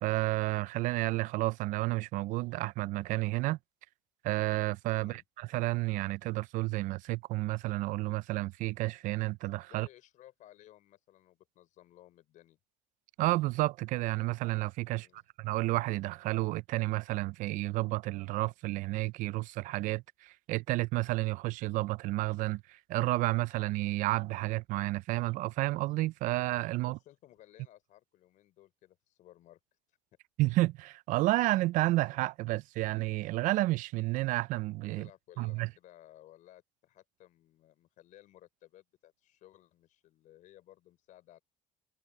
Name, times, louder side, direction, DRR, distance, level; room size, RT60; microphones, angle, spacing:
voice 1, 0.0-3.6 4.2-9.9 13.2-15.1 15.4-27.0 30.4-35.1 35.4-35.7, right 19 dB, 70° right, 0.4 m, -31 dB
voice 2, 9.7-12.6 14.9-15.2 26.8-29.6 29.9-30.0 35.0-41.4, left 14 dB, 65° left, 4.8 m, -58 dB
cardioid pair, 100°, 14 cm